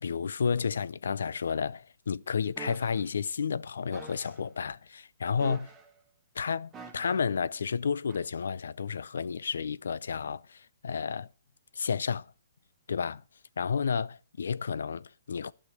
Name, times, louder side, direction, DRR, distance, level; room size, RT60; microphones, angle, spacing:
voice 1, 0.0-5.7 6.4-11.3 11.8-12.3 12.9-13.2 13.6-15.5, left 6 dB, 75° left, 0.5 m, -31 dB
sound 1, 2.6-3.0 3.9-4.4 5.4-6.0 6.7-7.3 8.1-8.3, right 6 dB, 15° right, 1.9 m, -46 dB
12.0 x 6.3 x 7.9 m
hypercardioid pair, 140°, 0 cm